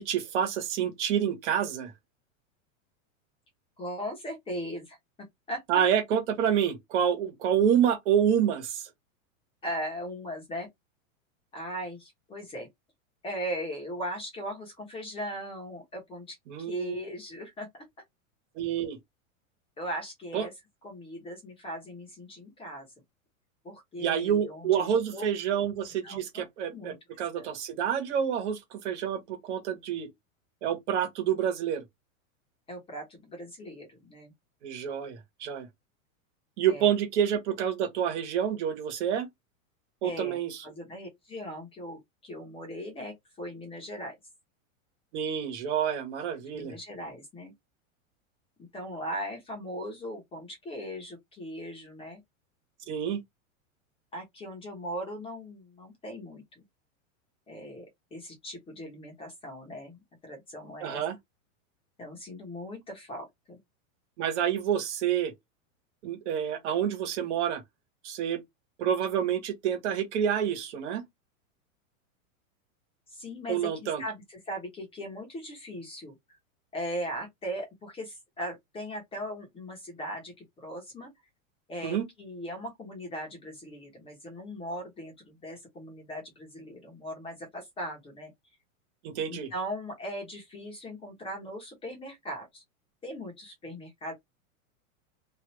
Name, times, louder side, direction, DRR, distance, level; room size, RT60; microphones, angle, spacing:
voice 1, 0.0-1.9 5.7-8.9 16.5-17.0 18.5-19.0 20.3-20.5 24.0-30.1 30.6-31.8 34.6-35.7 36.6-39.3 40.0-40.6 45.1-46.7 52.9-53.2 60.8-61.1 64.2-65.3 66.0-67.6 68.0-68.4 68.8-71.0 73.5-74.0 81.8-82.0 89.0-89.5, right 9 dB, 55° right, 1.3 m, -28 dB
voice 2, 3.8-5.8 9.6-10.7 11.5-12.7 13.2-17.8 19.8-20.5 20.8-22.9 23.6-25.2 26.0-26.5 26.7-27.0 27.4-27.5 32.7-34.3 36.7-36.9 40.0-44.1 46.4-47.5 48.7-52.2 54.1-56.6 57.5-61.0 62.0-63.6 73.1-76.2 76.7-81.1 81.7-88.3 89.3-92.6 93.0-94.1, equal, 15° left, 0.9 m, -39 dB
2.8 x 2.5 x 3.1 m
supercardioid pair, 155°, 41 cm